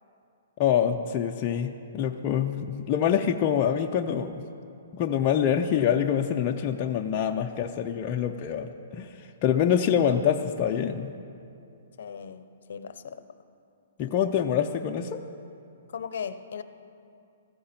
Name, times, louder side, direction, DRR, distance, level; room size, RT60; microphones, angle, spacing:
voice 1, 0.6-4.4 4.9-11.1 14.0-15.2, left 8 dB, 20° left, 2 dB, 0.4 m, -25 dB
voice 2, 12.0-13.3 15.9-16.6, left 7 dB, 55° left, 11 dB, 0.7 m, -37 dB
15.5 x 14.5 x 4.4 m, 2.6 s
hypercardioid pair, 175°, 0 cm